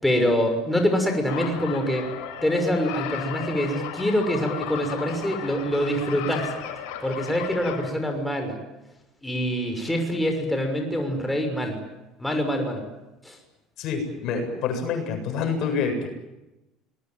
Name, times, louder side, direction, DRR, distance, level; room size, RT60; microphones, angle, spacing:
voice 1, 0.0-2.1 2.4-6.5 7.0-8.6 9.2-11.8 12.2-12.8 13.2-13.4, equal, 5° left, 4 dB, 6.2 m, -25 dB
sound 1, 1.3-7.9, left 9 dB, 80° left, 5.9 m, -35 dB
voice 2, 13.8-16.1, left 5 dB, 60° left, 5 dB, 7.7 m, -27 dB
27.5 x 20.5 x 9.3 m, 0.97 s
supercardioid pair, 95°, 0 cm